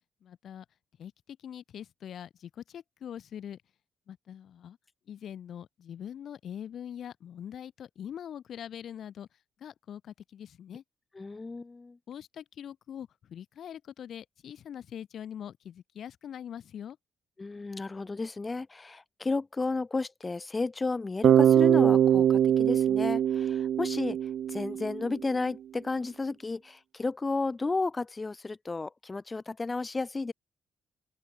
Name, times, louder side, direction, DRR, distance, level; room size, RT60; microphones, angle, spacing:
voice 1, 0.2-0.7 1.0-3.6 4.1-4.8 5.1-9.3 9.6-10.8 12.1-17.0, left 9 dB, 65° left, 5.3 m, -43 dB
voice 2, 11.2-12.0 17.4-30.3, left 3 dB, 25° left, 0.6 m, -33 dB
Bass guitar, 21.2-25.2, right 10 dB, 65° right, 0.5 m, -23 dB
open air
cardioid pair, 90°, 0 cm